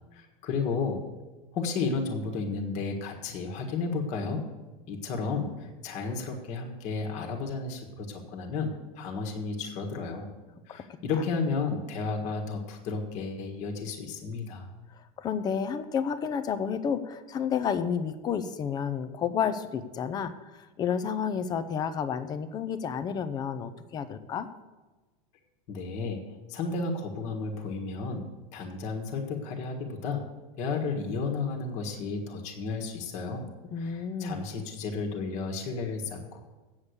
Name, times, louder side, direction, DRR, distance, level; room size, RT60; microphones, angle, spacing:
voice 1, 0.1-1.0 1.5-4.4 4.9-10.3 10.7-14.7 25.7-26.2 26.5-28.3 28.5-30.2 30.6-33.5 33.8-36.4, left 4 dB, 40° left, 2 dB, 1.5 m, -33 dB
voice 2, 15.2-20.3 20.8-24.5 33.7-34.4, left 7 dB, 20° left, 11 dB, 0.6 m, -30 dB
8.4 x 7.2 x 8.0 m, 1.2 s
supercardioid pair, 160°, 18 cm